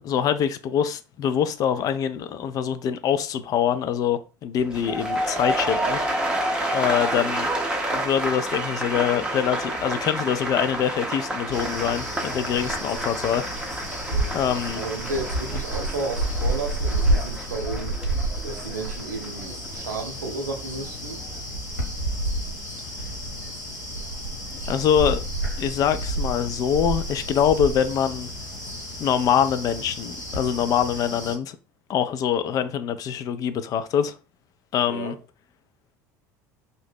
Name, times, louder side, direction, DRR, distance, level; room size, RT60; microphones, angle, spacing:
voice 1, 0.0-6.3 6.7-7.5 7.9-13.5 14.3-14.8 24.6-25.2 25.6-28.3 29.0-31.6 31.9-34.2 34.7-35.1, left 8 dB, 40° left, 0.3 m, -24 dB
sound 1, 4.6-20.7 21.0-21.4, right 1 dB, 10° right, 0.6 m, -30 dB
sound 2, 11.5-31.3, right 1 dB, 85° left, 1.1 m, -30 dB
voice 2, 14.7-18.0 18.4-21.2 34.9-35.2, right 3 dB, 75° right, 0.6 m, -33 dB
2.6 x 2.0 x 3.4 m
figure-of-eight pair, 70°, 10 cm